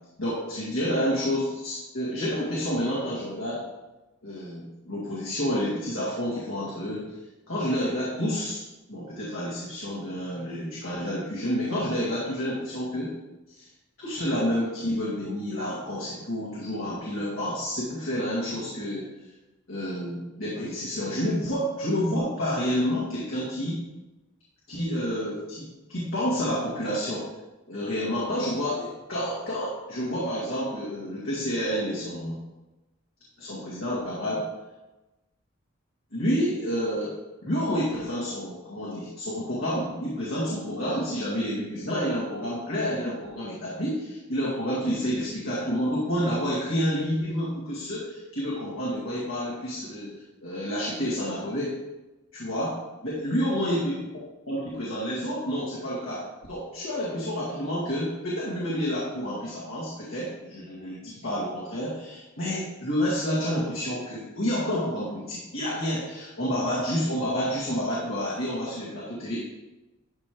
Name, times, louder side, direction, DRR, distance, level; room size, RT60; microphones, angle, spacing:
voice 1, 0.2-3.7 4.2-7.1 7.5-8.6 8.9-13.1 13.5-13.7 14.0-19.1 19.7-23.8 24.7-27.3 27.7-32.4 33.4-34.4 36.1-50.1 50.4-51.7 52.3-54.0 54.5-69.4, equal, 85° left, -7 dB, 2.0 m, -29 dB
11.5 x 5.1 x 3.1 m, 1.1 s
head